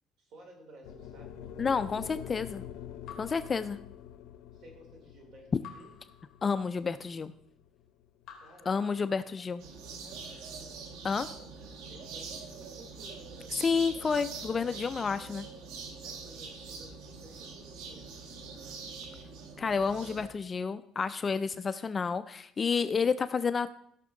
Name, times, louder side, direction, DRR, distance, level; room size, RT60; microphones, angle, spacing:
voice 1, 0.2-2.0 4.5-5.9 8.4-9.1 9.7-10.3 11.9-13.9 16.0-18.8, right 2 dB, 50° right, 2 dB, 3.2 m, -55 dB
sound 1, 0.8-9.1, left 9 dB, 75° left, 0.7 m, -46 dB
voice 2, 1.6-2.6 3.2-3.8 6.4-7.3 8.7-9.6 11.0-11.3 13.6-15.5 19.6-23.7, left 5 dB, 20° left, 12 dB, 0.3 m, -30 dB
Raindrop / Drip, 3.1-4.4 5.6-7.0 8.2-9.6, left 8 dB, 45° left, 2.3 m, -53 dB
sound 2, 9.6-20.3, right 4 dB, 85° right, 1.5 m, -44 dB
16.0 x 6.0 x 3.8 m, 0.71 s
cardioid pair, 165°, 0 cm